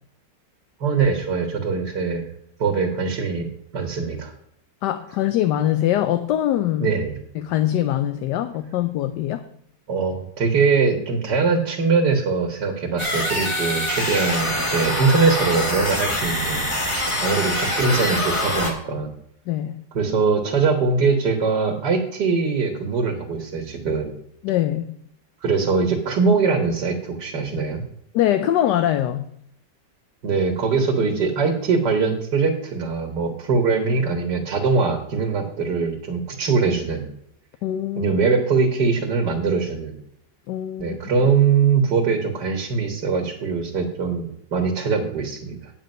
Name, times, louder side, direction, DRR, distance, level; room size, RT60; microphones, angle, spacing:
voice 1, 0.8-2.3 2.6-3.5 3.7-4.3 6.8-7.2 9.9-19.1 19.9-24.1 25.4-27.8 30.2-37.1 38.0-40.0 40.8-45.7, right 4 dB, 65° right, 1.9 m, -22 dB
voice 2, 4.8-6.9 7.4-9.5 19.5-19.8 24.4-25.0 28.1-29.3 37.6-38.1 40.5-41.0, left 12 dB, 75° left, 1.1 m, -23 dB
sound 1, 13.0-18.7, left 1 dB, 15° left, 1.7 m, -24 dB
9.1 x 8.4 x 5.3 m
omnidirectional pair, 2.0 m